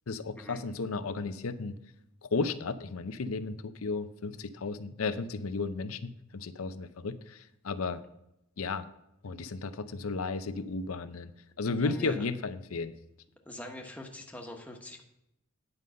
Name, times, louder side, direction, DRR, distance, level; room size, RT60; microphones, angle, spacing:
voice 1, 0.1-1.8 2.2-8.0 8.6-8.8 9.2-11.3 11.6-12.9, left 4 dB, 90° left, 12 dB, 0.6 m, -34 dB
voice 2, 11.7-12.2 13.4-15.0, left 1 dB, 5° left, 1 dB, 1.1 m, -43 dB
9.7 x 5.4 x 6.3 m, 0.83 s
head